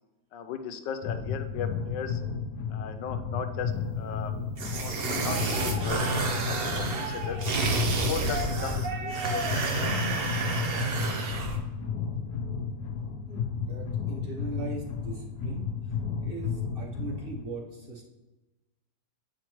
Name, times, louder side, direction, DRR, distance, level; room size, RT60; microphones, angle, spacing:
voice 1, 0.3-2.2 2.7-4.3 4.8-7.4 7.9-10.9 11.2-11.4, left 7 dB, 85° left, 8 dB, 1.3 m, -38 dB
sound 1, 1.0-17.4, left 6 dB, 70° left, 1.1 m, -33 dB
sound 2, 4.6-11.6, right 3 dB, 55° right, 0.6 m, -30 dB
sound 3, 4.7-7.6 8.2-9.9, right 3 dB, 75° right, 1.4 m, -38 dB
voice 2, 13.2-15.7 16.2-18.0, right 3 dB, 40° right, -2 dB, 1.0 m, -40 dB
8.5 x 5.0 x 3.0 m, 1.1 s
omnidirectional pair, 1.9 m